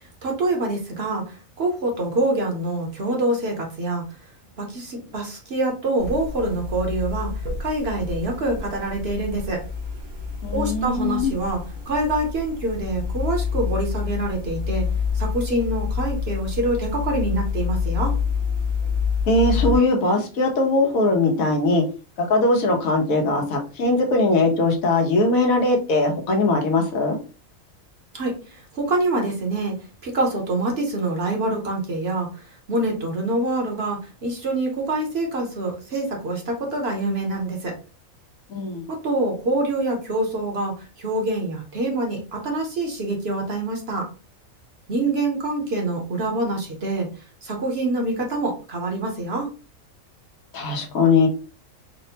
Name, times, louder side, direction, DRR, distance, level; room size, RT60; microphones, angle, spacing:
voice 1, 0.2-4.0 4.6-7.3 7.6-9.6 10.5-14.9 15.1-18.1 28.1-29.7 30.0-32.3 32.7-37.7 38.9-44.1 44.9-47.1 47.4-49.5, right 2 dB, 55° right, 1 dB, 1.0 m, -25 dB
sound 1, 6.0-19.8, left 6 dB, 75° right, 1.4 m, -27 dB
voice 2, 10.4-11.3 19.3-21.8 22.3-27.2 38.5-38.9 50.5-51.3, left 2 dB, 80° left, 2 dB, 1.3 m, -20 dB
4.2 x 2.1 x 2.7 m, 0.35 s
omnidirectional pair, 1.4 m